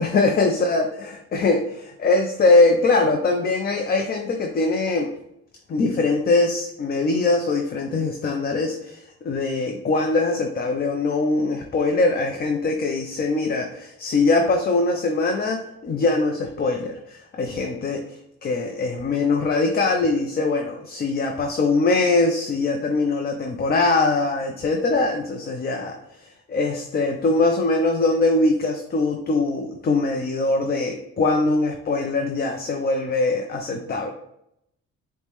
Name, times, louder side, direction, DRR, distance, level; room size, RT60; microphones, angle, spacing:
voice 1, 0.0-5.1 5.7-18.0 18.4-26.0 26.5-34.1, left 3 dB, 30° left, 3 dB, 0.4 m, -22 dB
4.9 x 2.1 x 3.0 m, 0.76 s
cardioid pair, 90°, 30 cm